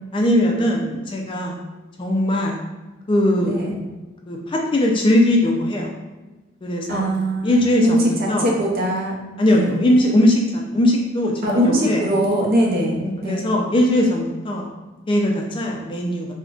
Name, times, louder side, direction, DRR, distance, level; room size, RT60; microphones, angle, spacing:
voice 1, 0.1-1.6 2.0-2.6 3.1-3.6 4.3-5.9 6.6-7.1 7.4-8.0 8.3-8.5 9.4-12.0 13.0-14.7 15.1-16.3, left 1 dB, 25° left, 0 dB, 0.3 m, -19 dB
voice 2, 3.4-3.7 6.9-9.2 9.5-9.8 11.4-13.5, right 1 dB, 50° right, -2 dB, 0.6 m, -21 dB
3.6 x 2.1 x 2.3 m, 1.2 s
head